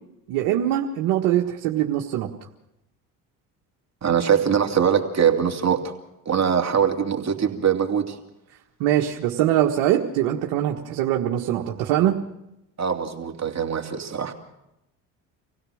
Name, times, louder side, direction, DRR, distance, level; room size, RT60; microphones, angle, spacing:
voice 1, 0.3-2.3 8.8-12.2, right 12 dB, 75° right, 0 dB, 1.7 m, -22 dB
voice 2, 4.0-5.9 6.3-8.2 12.8-14.3, right 7 dB, 40° right, 3 dB, 2.8 m, -22 dB
26.5 x 16.5 x 6.5 m, 0.90 s
hypercardioid pair, 65°, 43 cm